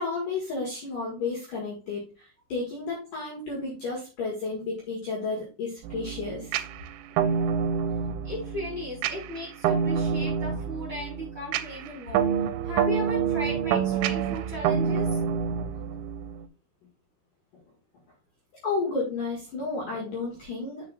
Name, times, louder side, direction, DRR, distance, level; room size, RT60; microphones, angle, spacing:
voice 1, 0.0-6.6 18.6-20.9, left 3 dB, 55° left, -4 dB, 2.7 m, -32 dB
sound 1, 5.8-16.5, right 7 dB, 85° right, 2.9 m, -27 dB
voice 2, 8.2-12.3 12.6-15.1, left 1 dB, 20° right, -4 dB, 3.6 m, -36 dB
7.5 x 6.8 x 2.4 m, 0.32 s
omnidirectional pair, 5.6 m